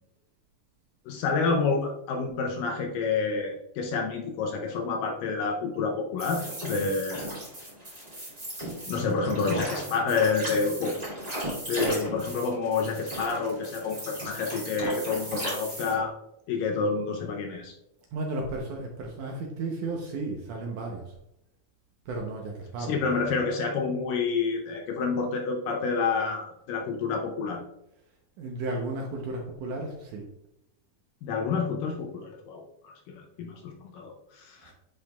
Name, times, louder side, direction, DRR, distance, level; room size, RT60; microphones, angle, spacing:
voice 1, 1.1-7.3 8.9-11.0 11.7-16.1 16.5-17.7 22.8-27.6 31.2-34.7, left 4 dB, 75° left, 2 dB, 2.2 m, -29 dB
sound 1, 6.2-16.0, right 1 dB, 15° right, 1.6 m, -36 dB
voice 2, 8.8-9.3 18.1-21.1 22.1-23.2 28.4-30.3 34.6-34.7, right 2 dB, 70° right, 0 dB, 2.0 m, -34 dB
10.0 x 4.9 x 2.3 m, 0.83 s
omnidirectional pair, 4.2 m